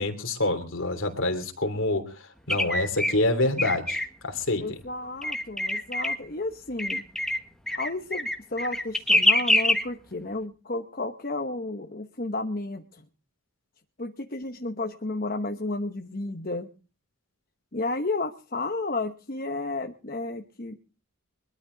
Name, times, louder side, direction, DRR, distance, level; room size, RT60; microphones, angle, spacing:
voice 1, 0.0-4.8, left 2 dB, 60° left, 6 dB, 3.1 m, -27 dB
sound 1, 2.5-3.1 3.6-4.1 5.2-6.2 6.8-7.4 7.7-9.8, left 1 dB, ahead, 1.5 m, -24 dB
voice 2, 4.6-7.0 7.7-13.0 14.0-16.7 17.7-20.7, left 2 dB, 40° left, 5 dB, 1.1 m, -32 dB
22.5 x 13.0 x 4.0 m, 0.36 s
head